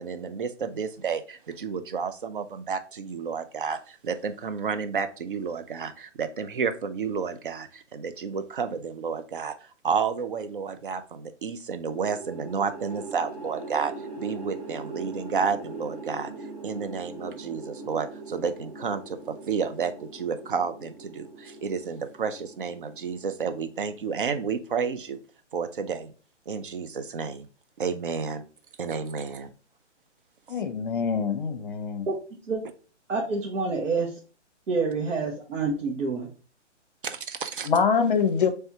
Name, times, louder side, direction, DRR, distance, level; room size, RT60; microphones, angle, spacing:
voice 1, 0.0-16.3 16.6-25.2 25.5-26.1 26.5-27.5 27.8-28.4 28.8-29.5 37.0-37.7, right 6 dB, 45° right, 0.5 m, -31 dB
sound 1, 11.9-24.2, right 2 dB, 30° right, 1.1 m, -41 dB
voice 2, 30.5-32.1 37.6-38.5, left 6 dB, 45° left, 0.7 m, -24 dB
voice 3, 33.1-34.1 34.7-36.3, right 4 dB, 85° right, 1.2 m, -27 dB
4.5 x 3.3 x 2.7 m
hypercardioid pair, 170°, 36 cm